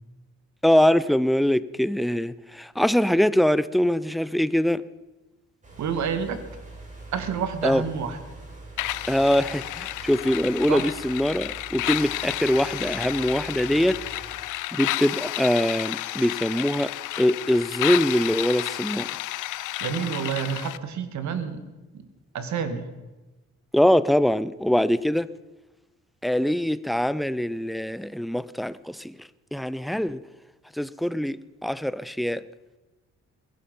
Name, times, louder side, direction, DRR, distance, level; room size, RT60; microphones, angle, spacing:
voice 1, 0.6-4.9 7.6-7.8 9.1-14.0 14.7-19.1 23.7-25.3 26.2-29.1 29.5-30.2 30.7-32.4, equal, ahead, 0.5 m, -23 dB
sound 1, 5.6-14.4, right 2 dB, 25° right, 5.9 m, -44 dB
voice 2, 5.8-6.4 7.1-8.2 10.7-10.9 19.8-21.7 21.9-22.0 22.3-22.8, right 7 dB, 70° right, 1.9 m, -28 dB
sound 2, 8.8-20.8, left 16 dB, 85° left, 0.6 m, -31 dB
21.0 x 11.5 x 5.4 m
cardioid pair, 90°, 30 cm